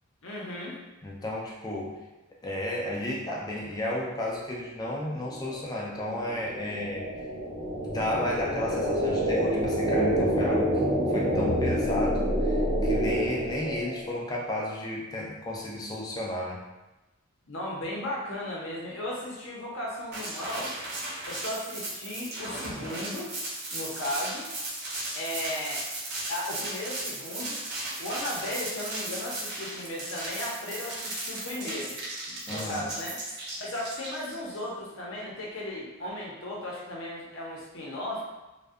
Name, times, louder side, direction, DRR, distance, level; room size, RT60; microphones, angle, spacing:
voice 1, 0.2-0.8 17.5-20.7 21.3-23.3 23.7-24.5 25.2-25.8 26.3-27.6 28.0-31.9 32.3-33.2 33.6-38.2, left 1 dB, 60° left, -3 dB, 0.6 m, -35 dB
voice 2, 1.0-2.0 2.4-7.1 7.9-10.7 11.1-16.6 32.5-32.8, left 1 dB, 20° left, -3 dB, 0.3 m, -33 dB
sound 1, 5.3-14.2, equal, 75° right, 0.8 m, -27 dB
sound 2, 20.1-34.6, right 2 dB, 50° right, 0.6 m, -36 dB
2.6 x 2.1 x 2.3 m, 1.0 s
head